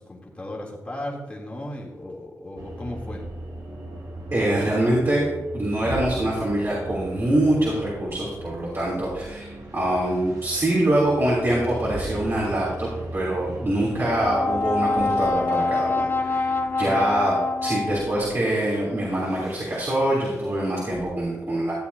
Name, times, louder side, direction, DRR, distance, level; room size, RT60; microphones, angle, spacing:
voice 1, 0.0-3.2 16.8-17.1, left 1 dB, 20° left, -3 dB, 3.0 m, -36 dB
sound 1, 2.6-21.1, right 1 dB, 70° right, 2.2 m, -39 dB
voice 2, 4.3-5.3 5.5-21.7, right 1 dB, 40° right, -6 dB, 3.3 m, -24 dB
Brass instrument, 13.9-18.3, left 3 dB, 40° left, 0.8 m, -25 dB
14.0 x 7.8 x 2.8 m, 1.1 s
cardioid pair, 60°, 6 cm